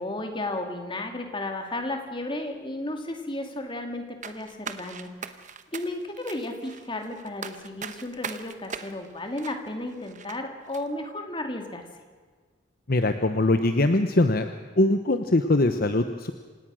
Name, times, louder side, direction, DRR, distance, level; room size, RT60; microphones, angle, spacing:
voice 1, 0.0-5.1 5.7-11.9, left 2 dB, 25° left, 4 dB, 2.4 m, -33 dB
sound 1, 4.2-10.4 10.7-10.8, right 6 dB, 35° right, 1.0 m, -40 dB
voice 2, 12.9-14.5 14.8-16.3, left 2 dB, 45° left, 8 dB, 0.9 m, -22 dB
27.5 x 17.5 x 6.3 m, 1.5 s
head